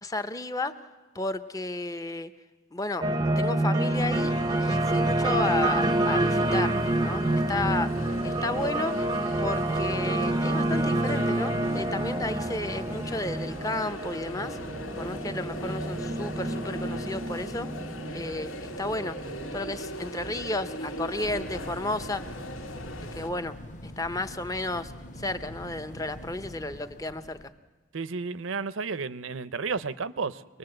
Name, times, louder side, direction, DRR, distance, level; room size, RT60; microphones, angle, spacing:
voice 1, 0.0-0.7 1.1-2.3 2.7-3.1 3.4-4.3 4.6-6.8 7.0-7.2 7.5-7.9 8.2-9.0 9.4-14.6 15.0-17.7 18.1-19.2 19.5-22.2 23.1-23.5 23.8-27.4, left 2 dB, 15° left, 10 dB, 0.7 m, -32 dB
sound 1, 3.0-19.3, right 1 dB, 20° right, 0.6 m, -28 dB
sound 2, 3.9-23.3, equal, 80° left, 1.9 m, -40 dB
sound 3, 21.2-27.5, equal, 35° left, 1.2 m, -44 dB
voice 2, 27.9-30.6, right 4 dB, 70° right, 16 dB, 0.7 m, -32 dB
25.0 x 20.0 x 7.8 m, 1.2 s
head